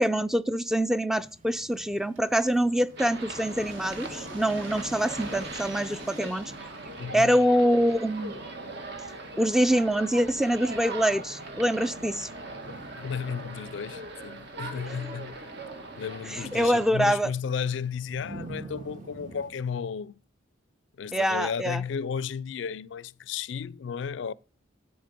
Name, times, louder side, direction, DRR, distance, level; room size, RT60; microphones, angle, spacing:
voice 1, 0.0-6.5 7.1-8.4 9.4-12.3 16.3-17.3 21.1-21.8, equal, ahead, 0.4 m, -25 dB
sound 1, 1.1-19.5, right 2 dB, 45° right, 1.7 m, -51 dB
sound 2, 2.2-8.0, right 1 dB, 90° right, 2.5 m, -45 dB
sound 3, 3.0-16.9, right 2 dB, 60° right, 2.0 m, -40 dB
voice 2, 7.0-7.4 13.0-15.4 16.0-20.1 21.0-24.3, left 6 dB, 65° left, 0.4 m, -33 dB
10.5 x 7.9 x 5.2 m
head